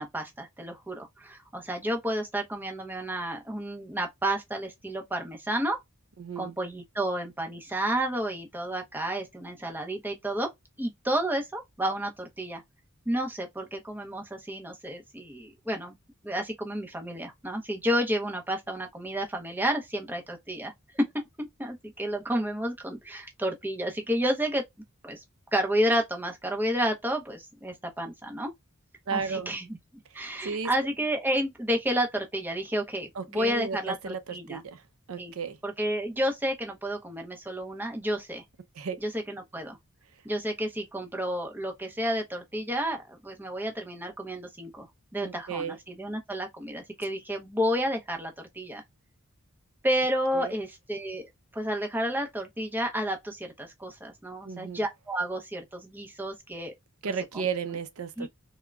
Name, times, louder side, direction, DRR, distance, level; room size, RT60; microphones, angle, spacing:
voice 1, 0.0-5.8 6.4-10.5 10.8-12.6 13.1-16.0 16.2-21.1 21.4-24.6 25.0-25.2 25.5-28.5 29.1-29.8 30.1-34.6 35.2-35.3 35.6-38.4 39.0-39.8 40.2-44.9 45.1-48.8 49.8-56.7 57.3-57.5 58.2-58.3, equal, 10° right, 0.6 m, -31 dB
voice 2, 6.2-6.6 29.1-29.5 30.4-30.7 33.2-34.8 35.1-35.6 38.8-39.0 45.2-45.8 50.3-50.6 54.4-54.8 57.0-58.3, right 6 dB, 75° right, 0.5 m, -33 dB
3.5 x 2.1 x 2.2 m
head